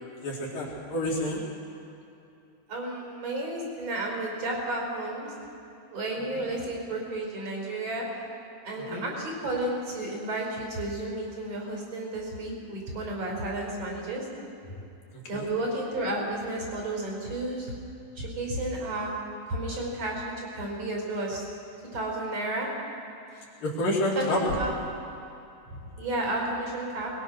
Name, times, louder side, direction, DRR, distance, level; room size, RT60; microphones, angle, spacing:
voice 1, 0.2-1.4 8.9-9.0 15.1-15.5 23.6-24.4, left 1 dB, 55° left, -4 dB, 4.3 m, -29 dB
voice 2, 2.7-5.3 5.9-8.1 8.6-14.2 15.3-17.7 18.2-19.1 19.5-21.5 21.9-22.7 24.2-24.7 26.0-27.1, right 1 dB, 35° right, -1 dB, 5.7 m, -32 dB
21.0 x 21.0 x 6.3 m, 2.7 s
omnidirectional pair, 4.9 m